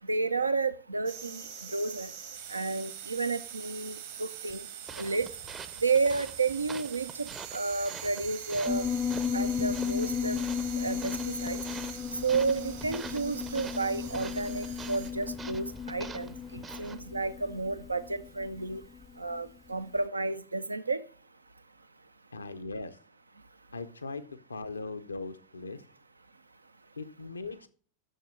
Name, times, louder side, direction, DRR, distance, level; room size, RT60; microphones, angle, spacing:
voice 1, 0.1-2.1 2.5-4.7 5.0-5.3 5.8-8.9 9.3-10.4 10.8-11.6 12.2-18.8 19.2-21.0, right 4 dB, 80° right, 13 dB, 0.5 m, -31 dB
sound 1, 1.1-15.1, right 9 dB, 60° right, 1.5 m, -44 dB
sound 2, 4.9-17.0, right 5 dB, 20° right, 0.6 m, -46 dB
Piano, 8.7-19.4, left 7 dB, 20° left, 0.5 m, -35 dB
voice 2, 22.3-23.0 23.7-24.2 24.5-25.8 27.0-27.7, left 3 dB, 75° left, 11 dB, 0.7 m, -39 dB
6.7 x 6.5 x 6.0 m, 0.44 s
figure-of-eight pair, 90°, 0 cm